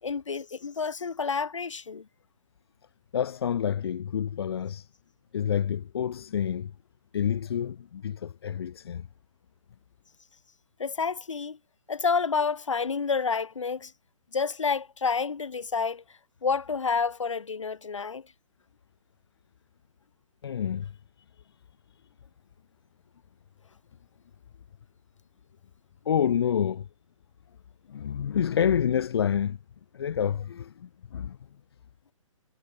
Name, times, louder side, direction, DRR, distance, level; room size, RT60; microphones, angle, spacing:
voice 1, 0.0-2.1 10.8-11.6 11.9-13.9 14.3-16.0 16.4-18.3, left 5 dB, 65° left, 3.5 m, -29 dB
voice 2, 3.1-4.9 5.3-6.7 7.1-9.1 20.4-20.9 26.1-26.9 27.9-29.6 29.9-31.4, left 8 dB, 45° left, 0.6 m, -28 dB
figure-of-eight pair, 130°, 17 cm